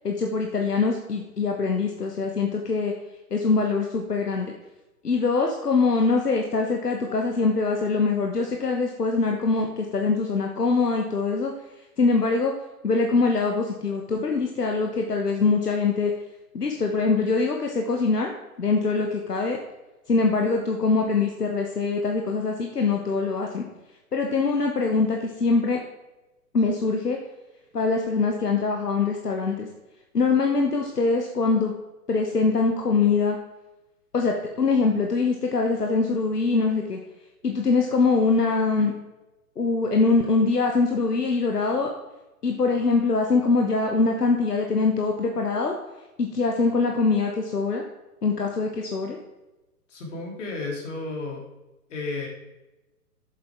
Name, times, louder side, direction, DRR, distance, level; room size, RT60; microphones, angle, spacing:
voice 1, 0.0-2.9 3.3-4.5 5.0-11.5 12.0-12.5 12.8-16.1 16.5-18.3 18.6-19.6 20.1-23.6 24.1-25.8 26.5-27.2 27.7-29.7 30.1-31.7 32.1-33.4 34.1-37.0 37.4-38.9 39.6-41.9 42.4-45.7 46.2-47.8 48.2-49.2, left 4 dB, 80° left, 2 dB, 1.3 m, -23 dB
voice 2, 49.9-51.4 51.9-52.3, left 3 dB, 50° left, 0 dB, 3.1 m, -32 dB
8.9 x 7.5 x 3.7 m, 1.0 s
figure-of-eight pair, 125°, 46 cm